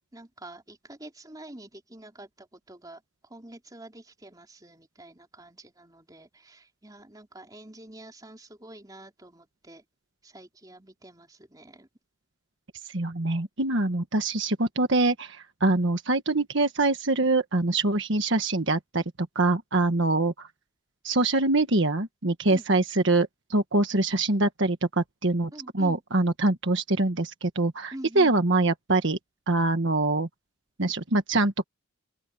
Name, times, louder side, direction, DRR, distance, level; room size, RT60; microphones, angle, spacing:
voice 1, 0.1-3.0 3.3-9.8 10.2-11.9 22.5-22.6 25.5-26.0 27.9-28.3, right 1 dB, 15° right, 3.8 m, -46 dB
voice 2, 12.9-20.5 21.0-29.2 29.5-30.3 30.8-31.6, right 2 dB, 60° right, 1.6 m, -24 dB
open air
head